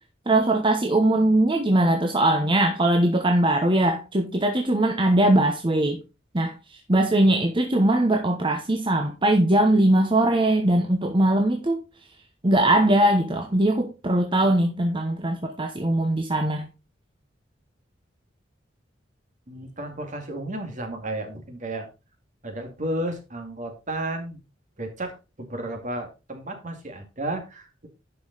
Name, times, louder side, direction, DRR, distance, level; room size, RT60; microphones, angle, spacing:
voice 1, 0.3-6.0 6.3-6.5 6.9-11.8 12.4-16.7, right 1 dB, 25° right, 1.0 m, -21 dB
voice 2, 19.5-21.9 22.4-24.4 24.8-27.9, right 1 dB, 40° right, 2.3 m, -33 dB
10.5 x 5.6 x 4.0 m
head